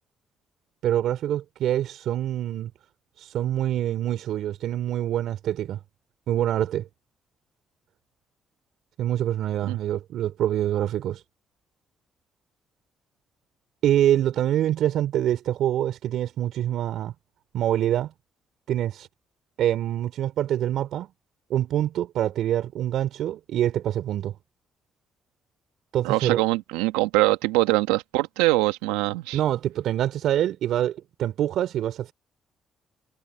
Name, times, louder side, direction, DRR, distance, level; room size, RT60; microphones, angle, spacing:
voice 1, 0.8-2.7 3.2-5.8 6.3-6.9 9.0-11.2 13.8-17.1 17.5-18.1 18.7-19.1 19.6-21.1 21.5-24.3 25.9-26.4 29.3-32.1, right 11 dB, 70° right, 3.2 m, -25 dB
voice 2, 26.0-29.4, right 20 dB, 90° right, 1.5 m, -23 dB
supercardioid pair, 55°, 0 cm